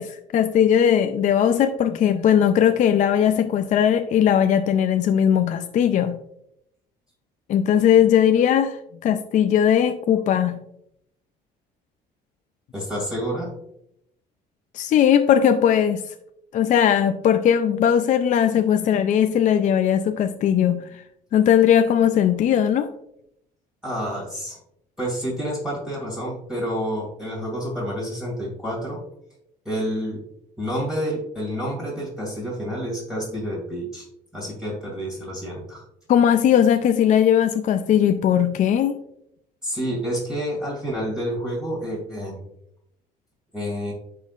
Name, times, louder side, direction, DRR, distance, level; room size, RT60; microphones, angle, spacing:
voice 1, 0.0-6.2 7.5-10.6 14.7-16.1 16.5-21.0 21.3-22.9 36.1-39.0, left 9 dB, 50° left, 8 dB, 0.4 m, -19 dB
voice 2, 12.7-13.6 23.8-24.6 25.0-29.0 29.6-30.2 30.6-34.0 34.3-35.8 39.6-42.4 43.5-43.9, equal, 5° right, -6 dB, 2.4 m, -29 dB
10.5 x 3.8 x 2.4 m, 0.76 s
cardioid pair, 110°, 17 cm